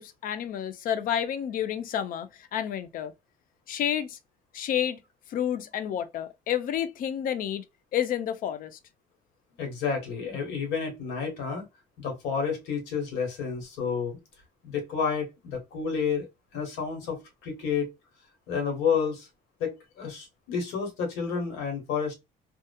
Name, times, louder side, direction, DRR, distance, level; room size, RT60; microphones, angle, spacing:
voice 1, 0.0-3.1 3.7-4.2 4.5-5.0 5.3-7.6 7.9-8.8, left 9 dB, 55° left, 0.5 m, -30 dB
voice 2, 9.6-11.7 12.0-14.2 14.6-16.3 16.5-17.9 18.5-19.3 19.6-22.1, left 6 dB, 90° left, 1.3 m, -30 dB
2.7 x 2.3 x 2.2 m
cardioid pair, 110°, 17 cm